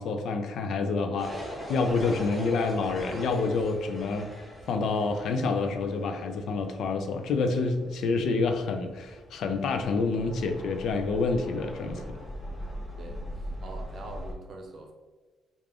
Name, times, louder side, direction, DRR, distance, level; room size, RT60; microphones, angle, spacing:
voice 1, 0.0-1.3 1.7-4.3 4.7-12.0, left 4 dB, 75° left, 6 dB, 0.4 m, -28 dB
sound 1, 1.2-14.3, equal, 15° left, 0.9 m, -41 dB
voice 2, 13.6-14.9, right 2 dB, 55° right, 4 dB, 0.6 m, -43 dB
3.3 x 2.4 x 3.5 m, 1.3 s
cardioid pair, 90°, 0 cm